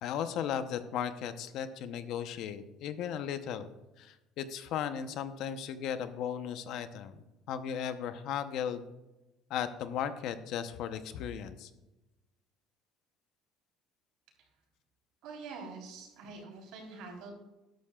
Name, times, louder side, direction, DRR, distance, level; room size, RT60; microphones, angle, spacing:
voice 1, 0.0-3.7 4.0-8.8 9.5-11.7, left 8 dB, 60° left, 10 dB, 0.8 m, -36 dB
voice 2, 15.2-17.3, right 4 dB, 70° right, 1 dB, 3.7 m, -45 dB
13.0 x 11.5 x 2.4 m, 1.0 s
cardioid pair, 155°, 0 cm